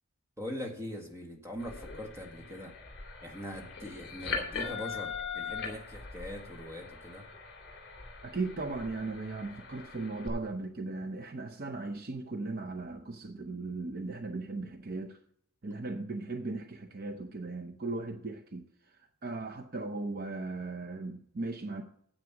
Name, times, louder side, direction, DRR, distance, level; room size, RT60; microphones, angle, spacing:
voice 1, 0.4-2.7 3.2-7.2, left 1 dB, 10° right, 1 dB, 1.7 m, -42 dB
sound 1, 1.6-10.3, left 5 dB, 50° left, 3.0 m, -41 dB
voice 2, 8.2-15.2 15.6-21.8, right 3 dB, 40° right, 5 dB, 0.6 m, -37 dB
9.5 x 8.2 x 5.8 m, 0.67 s
head